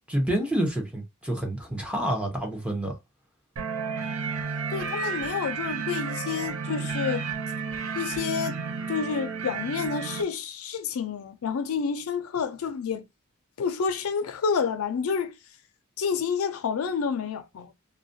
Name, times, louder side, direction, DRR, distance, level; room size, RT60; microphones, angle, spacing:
voice 1, 0.1-3.0, right 1 dB, 5° right, 0.6 m, -28 dB
sound 1, 3.6-10.2, right 5 dB, 70° right, 0.4 m, -32 dB
voice 2, 4.7-7.3 8.0-8.6 8.9-13.0 13.6-15.4 16.0-17.7, left 6 dB, 80° left, 0.4 m, -29 dB
2.4 x 2.2 x 2.5 m
head